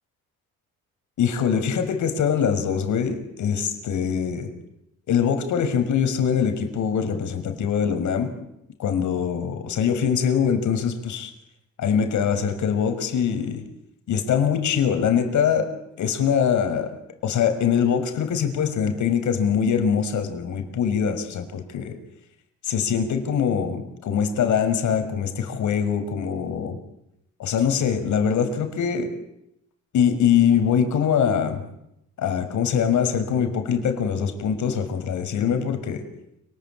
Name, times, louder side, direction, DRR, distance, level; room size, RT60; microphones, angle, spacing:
voice 1, 1.2-4.5 5.1-8.3 8.8-11.3 11.8-13.6 14.1-15.7 16.0-16.9 17.2-21.9 22.6-26.8 27.4-29.1 29.9-31.6 32.2-36.0, left 7 dB, 75° left, 7 dB, 6.1 m, -23 dB
29.5 x 20.5 x 9.0 m, 0.82 s
cardioid pair, 90°, 30 cm